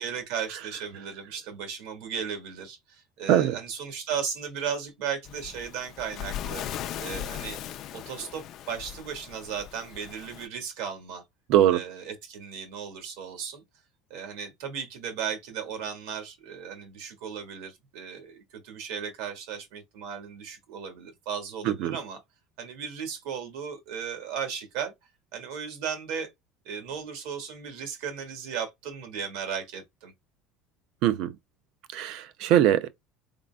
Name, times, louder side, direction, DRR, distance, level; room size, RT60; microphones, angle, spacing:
voice 1, 0.0-6.6 7.0-7.6 7.9-11.2 11.7-13.6 14.1-22.2 22.6-24.9 25.3-26.3 26.6-30.1, right 7 dB, 70° right, 1.4 m, -36 dB
Waves surf, 5.2-10.5, left 11 dB, 40° left, 0.4 m, -38 dB
voice 2, 11.5-11.8 21.6-21.9 31.0-31.3 31.9-32.9, right 11 dB, 50° right, 0.4 m, -22 dB
4.0 x 3.7 x 2.3 m
cardioid pair, 170°, 0 cm